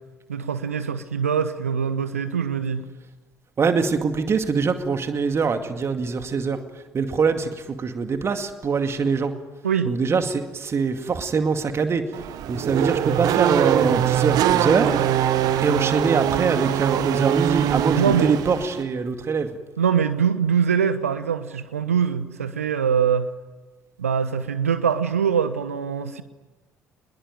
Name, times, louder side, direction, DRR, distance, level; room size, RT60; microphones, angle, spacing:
voice 1, 0.3-2.8 9.6-10.0 18.0-18.3 19.8-23.3 24.0-26.2, right 7 dB, 80° right, 13 dB, 1.1 m, -23 dB
voice 2, 3.6-6.6 6.9-7.5 7.8-9.3 9.9-12.0 12.5-14.9 15.6-19.5, right 5 dB, 35° right, 7 dB, 2.2 m, -23 dB
Race car auto racing / Accelerating revving vroom, 12.1-18.8, right 11 dB, 55° right, 1.5 m, -22 dB
25.0 x 21.5 x 9.2 m, 1.2 s
figure-of-eight pair, 50°, 8 cm